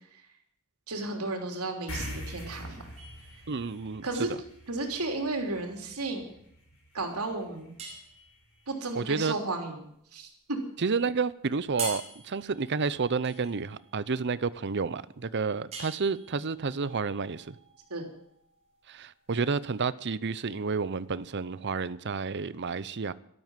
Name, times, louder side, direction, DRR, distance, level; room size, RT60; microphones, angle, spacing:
voice 1, 0.9-2.8 4.0-4.3 4.7-6.3 6.9-7.7 8.7-10.6 17.9-18.0, right 2 dB, 85° right, 3.4 m, -33 dB
sound 1, 1.9-8.7, left 1 dB, 70° left, 6.5 m, -45 dB
sound 2, 3.0-19.8, right 3 dB, 30° right, 4.9 m, -46 dB
voice 2, 3.5-4.1 9.0-9.3 10.8-17.6 18.9-23.1, right 4 dB, 50° right, 0.6 m, -30 dB
12.5 x 12.5 x 7.4 m
head